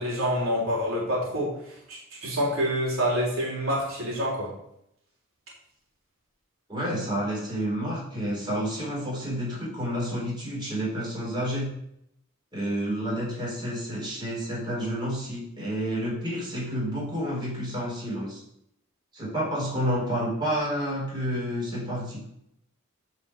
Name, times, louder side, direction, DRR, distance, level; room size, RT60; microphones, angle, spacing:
voice 1, 0.0-1.5 1.9-4.5, equal, 80° right, -4 dB, 3.6 m, -27 dB
voice 2, 6.7-11.7 12.5-18.4 19.1-22.2, equal, 20° right, -5 dB, 4.4 m, -30 dB
9.3 x 5.5 x 6.7 m, 0.76 s
head